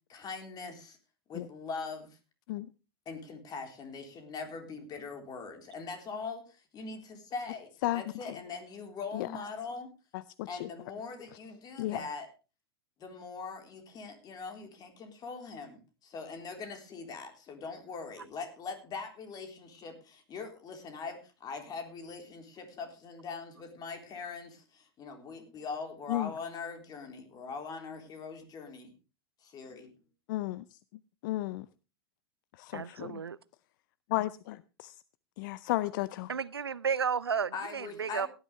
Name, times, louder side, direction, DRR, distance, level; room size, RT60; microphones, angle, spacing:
voice 1, 0.1-1.0 1.3-2.1 3.1-9.9 10.5-12.3 13.0-28.9 29.4-29.9 37.5-38.3, left 4 dB, 30° left, 5 dB, 3.8 m, -42 dB
voice 2, 10.1-10.7 11.8-12.0 26.1-26.3 30.3-30.7 31.2-31.7 32.6-33.2 34.1-34.9 35.4-36.3, left 17 dB, 55° left, 17 dB, 0.6 m, -33 dB
voice 3, 32.7-33.4 36.3-38.3, right 6 dB, 85° right, 21 dB, 0.6 m, -32 dB
17.5 x 11.0 x 3.3 m, 0.31 s
figure-of-eight pair, 95°, 13 cm